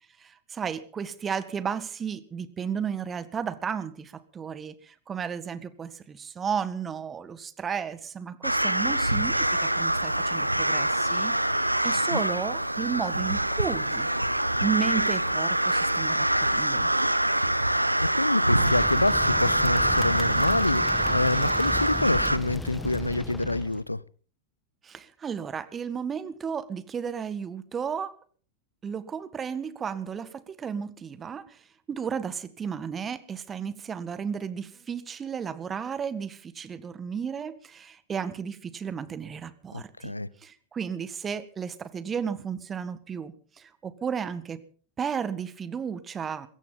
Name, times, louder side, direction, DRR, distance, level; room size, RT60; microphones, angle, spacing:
voice 1, 0.2-14.1 14.6-16.9 24.8-28.1 28.8-40.1 40.4-44.6 45.0-46.5, right 7 dB, 20° right, 1.7 m, -33 dB
sound 1, 8.4-22.4, right 1 dB, 85° right, 1.0 m, -25 dB
voice 2, 18.0-24.0 39.7-40.3, left 2 dB, 85° left, 0.7 m, -27 dB
sound 2, 18.6-23.8, left 2 dB, 5° left, 1.7 m, -35 dB
22.0 x 16.5 x 4.0 m
figure-of-eight pair, 90°, 0 cm